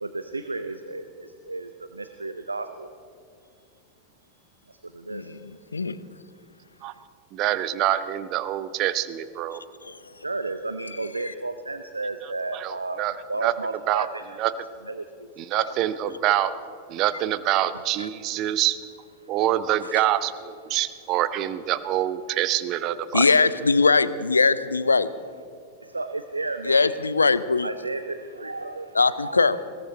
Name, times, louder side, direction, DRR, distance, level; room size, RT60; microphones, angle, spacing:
voice 1, 0.0-2.9 3.4-3.6 4.7-5.4 10.1-13.0 13.3-14.2 14.9-15.7 16.3-16.4 19.2-19.3 25.8-26.9 27.6-29.4, right 3 dB, 80° right, 9 dB, 0.6 m, -33 dB
voice 2, 7.3-9.6 12.5-13.2 13.4-13.5 13.9-14.1 14.4-14.5 15.4-16.5 16.9-18.8 19.3-23.3, right 13 dB, 40° right, 14 dB, 0.7 m, -25 dB
voice 3, 23.1-25.1 26.6-27.7 28.9-29.6, left 4 dB, 80° left, 16 dB, 0.5 m, -20 dB
21.0 x 17.0 x 4.0 m, 2.4 s
figure-of-eight pair, 90°, 0 cm